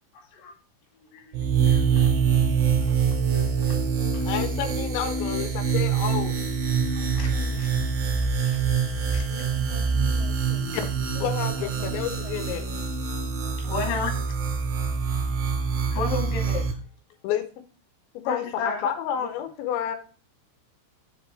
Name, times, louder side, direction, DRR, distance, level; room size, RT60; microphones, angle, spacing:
voice 1, 0.1-0.5 1.1-2.1 3.1-3.9 4.1-4.3 6.9-7.7 8.3-8.7 9.1-9.4 13.6-14.1 15.9-16.8 18.2-18.9 19.2-19.3, left 4 dB, 55° left, 1 dB, 3.6 m, -34 dB
sound 1, 1.3-16.7, right 6 dB, 65° right, 3.7 m, -25 dB
voice 2, 4.3-6.4 10.7-10.9 11.1-12.7 17.2-17.4 18.3-20.0, left 9 dB, 80° left, 8 dB, 3.0 m, -30 dB
voice 3, 7.3-7.7 9.3-12.9, left 1 dB, 30° left, -2 dB, 2.0 m, -44 dB
7.5 x 6.4 x 4.2 m, 0.37 s
omnidirectional pair, 5.7 m